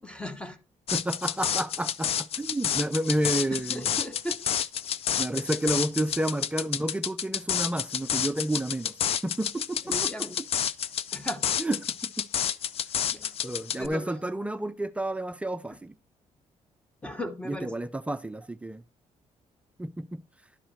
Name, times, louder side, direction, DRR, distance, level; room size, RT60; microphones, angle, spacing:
voice 1, 0.0-0.6 3.5-4.4 9.8-10.4 11.1-11.5 13.1-13.3 13.8-14.2 15.7-15.8 17.0-17.7, equal, 10° left, 1.0 m, -37 dB
sound 1, 0.9-13.9, left 9 dB, 50° left, 0.4 m, -30 dB
voice 2, 0.9-3.9 5.2-8.9 9.2-10.1 11.6-12.3 13.4-15.9 17.5-18.8 19.8-20.2, right 1 dB, 10° right, 0.4 m, -30 dB
11.0 x 4.9 x 4.3 m
cardioid pair, 135°, 13 cm